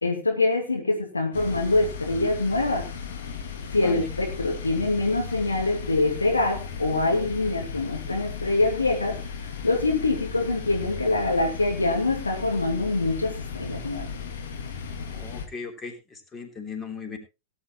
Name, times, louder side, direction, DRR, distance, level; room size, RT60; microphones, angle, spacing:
voice 1, 0.0-2.9 3.7-9.2 9.6-14.1, left 2 dB, 80° left, 2 dB, 2.4 m, -24 dB
sound 1, 1.3-15.5, left 6 dB, 60° left, 2.3 m, -36 dB
voice 2, 3.8-4.1 15.1-17.2, left 5 dB, 20° left, 5 dB, 3.1 m, -37 dB
18.0 x 9.7 x 3.0 m, 0.27 s
figure-of-eight pair, 90°, 0 cm